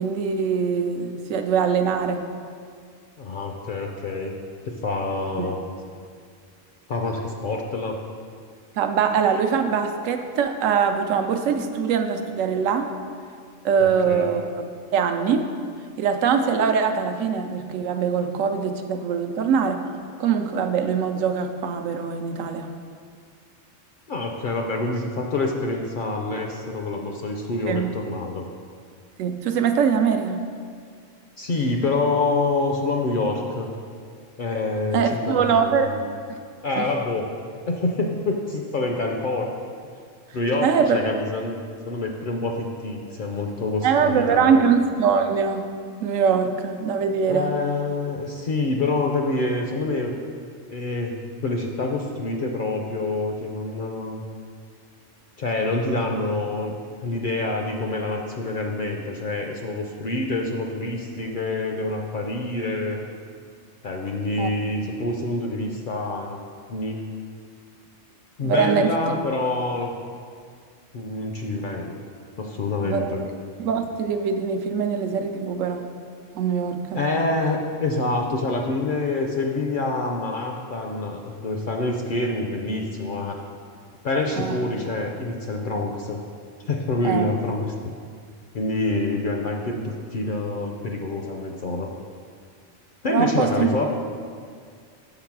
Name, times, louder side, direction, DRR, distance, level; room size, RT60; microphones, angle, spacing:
voice 1, 0.0-2.3 5.4-5.5 8.8-12.9 13.6-15.5 16.0-19.8 20.2-22.7 27.7-27.9 29.2-30.4 34.9-35.9 36.3-36.4 36.8-36.9 40.6-41.0 43.8-45.7 46.0-47.5 64.4-64.5 68.4-68.9 72.8-73.2 73.6-75.9 76.3-77.0 84.4-84.6 87.0-87.3 93.1-93.7, right 6 dB, 90° right, 6 dB, 1.0 m, -22 dB
voice 2, 3.2-4.3 4.6-5.6 6.9-8.0 13.8-14.3 24.1-28.4 31.4-33.7 34.4-36.0 36.6-37.3 37.6-39.5 40.3-41.6 41.9-44.6 47.3-50.1 50.7-51.1 51.4-54.2 55.4-56.8 57.0-63.0 63.8-66.4 66.7-67.0 68.4-69.9 70.9-71.9 72.4-73.2 76.9-83.4 84.0-86.2 86.7-87.9 88.5-91.9 93.0-93.9, left 2 dB, 60° left, 1 dB, 0.6 m, -26 dB
6.6 x 3.9 x 5.9 m, 2.1 s
omnidirectional pair, 1.3 m